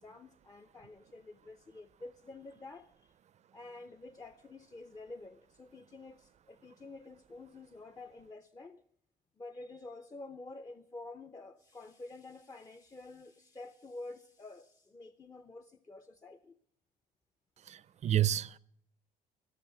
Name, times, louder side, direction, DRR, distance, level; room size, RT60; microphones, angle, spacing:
voice 1, 0.0-2.9 3.5-8.8 9.4-16.5, left 2 dB, 20° left, 0.6 m, -49 dB
voice 2, 17.6-18.6, right 12 dB, 40° right, 0.5 m, -30 dB
17.5 x 7.0 x 9.3 m
cardioid pair, 110°, 17 cm